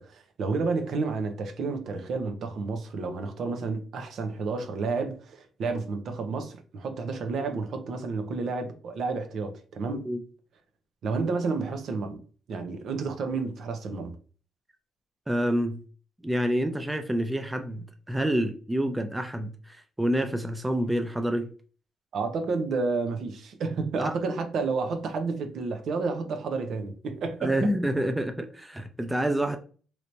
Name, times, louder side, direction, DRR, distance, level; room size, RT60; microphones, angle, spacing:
voice 1, 0.0-10.1 11.0-12.2 12.5-14.1 22.1-27.5, right 4 dB, 65° right, 0.7 m, -30 dB
voice 2, 15.3-15.8 16.2-21.5 24.0-24.2 27.4-29.6, right 1 dB, 10° right, 0.5 m, -28 dB
3.2 x 2.9 x 2.6 m
cardioid pair, 90°, 0 cm